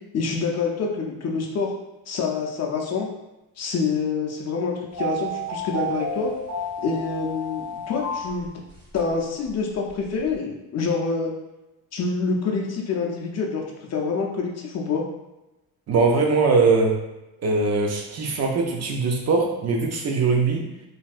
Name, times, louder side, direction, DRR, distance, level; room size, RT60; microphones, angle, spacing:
voice 1, 0.1-1.7 2.1-3.1 3.6-6.3 6.8-8.5 8.9-11.3 11.9-13.6 13.9-15.0, left 4 dB, 40° left, -1 dB, 0.5 m, -26 dB
sound 1, 4.9-9.1 9.5-9.6 9.9-10.3, equal, 15° right, 1.2 m, -31 dB
voice 2, 15.9-17.0 17.4-20.7, right 4 dB, 35° right, 1 dB, 0.5 m, -21 dB
3.3 x 2.6 x 2.4 m, 0.98 s
cardioid pair, 135°, 43 cm